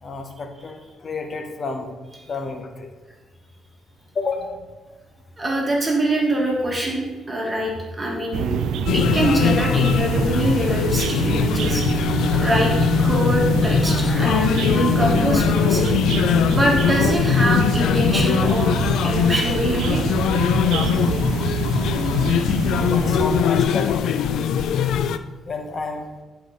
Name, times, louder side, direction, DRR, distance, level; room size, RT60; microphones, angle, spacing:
voice 1, 0.0-1.9 2.2-2.9 4.1-4.7 22.8-24.3 25.4-26.1, left 4 dB, 40° left, 4 dB, 1.3 m, -30 dB
voice 2, 5.4-8.7 8.9-11.8 12.4-12.7 13.0-15.9 16.5-20.0 20.9-21.0, right 1 dB, 25° right, -2 dB, 1.9 m, -24 dB
sound 1, 8.3-23.4, right 8 dB, 80° right, 0.4 m, -26 dB
sound 2, 8.9-25.2, left 8 dB, 80° left, 0.4 m, -21 dB
sound 3, 11.1-17.5, left 1 dB, 10° left, 0.8 m, -30 dB
10.0 x 4.7 x 4.0 m, 1.3 s
cardioid pair, 90°, 0 cm